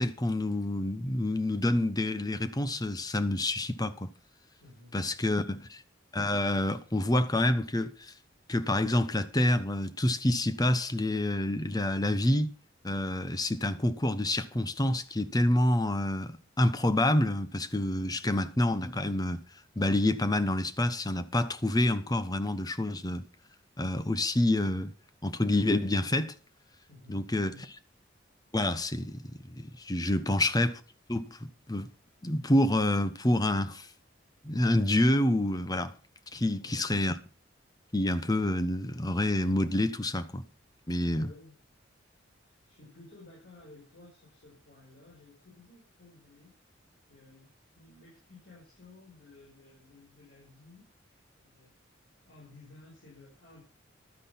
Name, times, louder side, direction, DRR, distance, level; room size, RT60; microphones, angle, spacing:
voice 1, 0.0-4.1 4.9-5.8 6.1-8.1 8.5-12.5 12.8-19.4 19.8-23.2 23.8-24.9 25.2-26.3 27.1-27.6 28.5-29.2 29.5-30.8 31.1-31.9 32.2-33.9 34.4-35.9 36.3-37.2 37.9-40.4 40.9-41.3, left 1 dB, 20° left, 1.0 m, -28 dB
voice 2, 4.6-4.9 17.9-18.2 26.9-27.7 30.2-30.5 36.6-36.9 40.9-41.6 42.4-46.5 47.1-47.5 47.8-53.6, left 2 dB, 65° left, 5.9 m, -55 dB
12.5 x 9.8 x 5.8 m
head